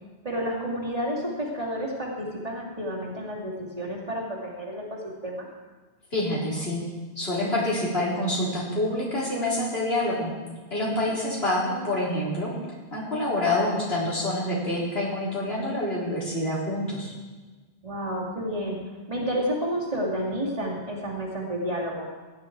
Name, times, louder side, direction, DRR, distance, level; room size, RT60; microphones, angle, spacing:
voice 1, 0.2-5.5 10.8-11.1 17.8-18.8 19.1-22.1, equal, 35° right, -4 dB, 2.6 m, -30 dB
voice 2, 6.1-6.8 7.2-10.3 10.7-12.5 12.9-17.1, left 1 dB, 65° left, -6 dB, 4.4 m, -27 dB
16.5 x 10.5 x 4.6 m, 1.3 s
omnidirectional pair, 1.1 m